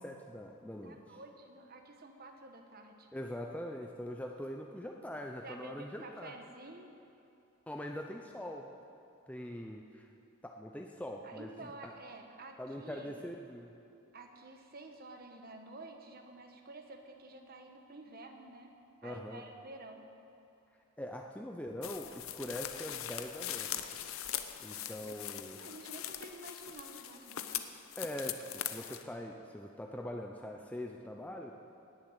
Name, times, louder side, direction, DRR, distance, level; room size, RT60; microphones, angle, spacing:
voice 1, 0.0-1.2 3.1-6.3 7.7-8.7 9.3-10.1 10.4-11.9 12.6-13.7 19.0-19.4 21.0-24.0 24.6-25.6 28.0-31.5, left 1 dB, 5° left, 1 dB, 0.6 m, -43 dB
voice 2, 0.8-3.1 5.4-6.9 11.2-13.2 14.1-18.7 19.0-20.0 25.5-27.5, right 2 dB, 45° right, 4 dB, 1.4 m, -50 dB
sound 1, 21.8-29.0, left 11 dB, 70° left, 0.7 m, -41 dB
19.0 x 7.3 x 8.1 m, 2.7 s
head